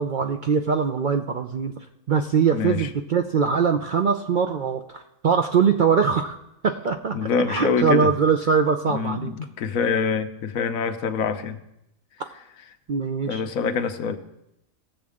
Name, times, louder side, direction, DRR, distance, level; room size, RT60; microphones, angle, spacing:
voice 1, 0.0-1.7 2.1-6.4 6.6-7.1 7.5-9.3 12.9-13.4, right 6 dB, 60° right, 5 dB, 0.5 m, -22 dB
voice 2, 2.5-2.9 7.1-8.1 8.9-11.6 13.3-14.2, left 6 dB, 85° left, 8 dB, 1.2 m, -25 dB
18.0 x 7.4 x 3.6 m, 0.85 s
omnidirectional pair, 1.4 m